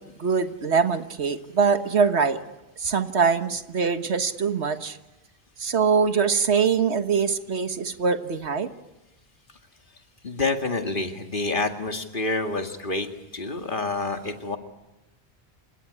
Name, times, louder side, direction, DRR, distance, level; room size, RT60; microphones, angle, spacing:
voice 1, 0.2-2.4 2.8-5.0 5.6-8.7, right 5 dB, 80° right, 9 dB, 1.7 m, -23 dB
voice 2, 10.2-13.1 13.3-14.6, left 3 dB, 50° left, 6 dB, 2.3 m, -28 dB
27.5 x 18.0 x 10.0 m, 0.99 s
omnidirectional pair, 1.1 m